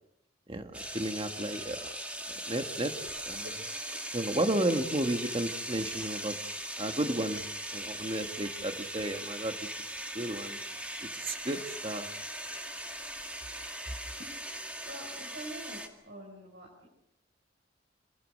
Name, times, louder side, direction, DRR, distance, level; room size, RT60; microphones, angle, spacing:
voice 1, 0.5-1.9 2.3-3.0 3.3-3.4 4.1-6.4 6.8-7.4 7.7-10.6 11.0-12.1, right 1 dB, 30° right, 6 dB, 1.7 m, -33 dB
sound 1, 0.7-15.9, right 1 dB, 5° right, 2.2 m, -39 dB
voice 2, 3.2-3.5 3.9-4.0 14.2-14.3 14.8-16.9, right 1 dB, 60° right, -1 dB, 5.1 m, -46 dB
26.5 x 19.5 x 6.5 m, 0.84 s
head